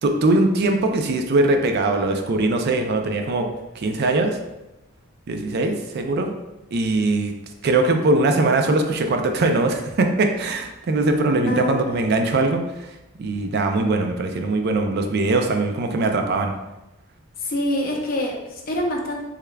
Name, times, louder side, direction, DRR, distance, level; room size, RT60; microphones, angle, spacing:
voice 1, 0.0-3.5 3.8-4.4 5.3-6.3 6.7-7.3 7.6-12.6 13.2-16.5, right 2 dB, 50° right, 4 dB, 0.4 m, -21 dB
voice 2, 11.5-11.8 17.4-19.2, left 1 dB, 45° left, 0 dB, 0.6 m, -25 dB
3.5 x 3.3 x 2.2 m, 0.98 s
head